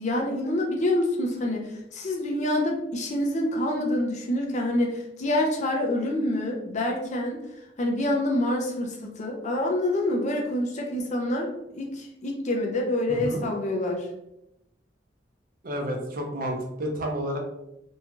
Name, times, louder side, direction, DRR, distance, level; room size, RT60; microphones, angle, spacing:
voice 1, 0.0-7.4 7.8-14.1, left 1 dB, 40° left, 0 dB, 0.5 m, -27 dB
voice 2, 13.1-13.4 15.6-17.4, equal, 50° right, 1 dB, 0.6 m, -30 dB
2.7 x 2.3 x 2.8 m, 0.86 s
head